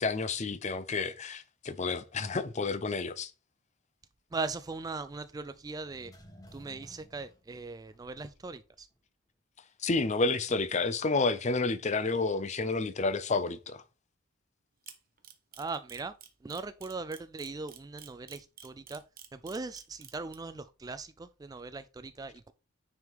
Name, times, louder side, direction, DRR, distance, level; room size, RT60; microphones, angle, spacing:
voice 1, 0.0-3.3 9.8-13.8, left 3 dB, 35° left, 0.6 m, -30 dB
voice 2, 4.3-6.1 6.5-8.9 15.6-16.1 16.4-19.0 19.3-22.5, right 3 dB, 20° right, 0.3 m, -39 dB
sound 1, 5.8-8.7 8.9-9.0, equal, 20° left, 1.2 m, -55 dB
Camera, 14.9-20.3, right 9 dB, 45° right, 1.0 m, -49 dB
9.5 x 3.6 x 4.6 m
head